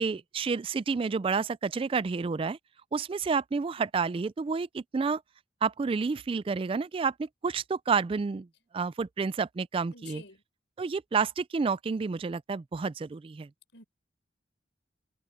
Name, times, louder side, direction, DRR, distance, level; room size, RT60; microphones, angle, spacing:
voice 1, 0.0-2.6 2.9-5.2 5.6-8.5 8.7-10.2 10.8-13.5, right 5 dB, 30° right, 0.3 m, -30 dB
voice 2, 9.9-10.4 13.7-13.8, left 4 dB, 75° left, 6.2 m, -49 dB
head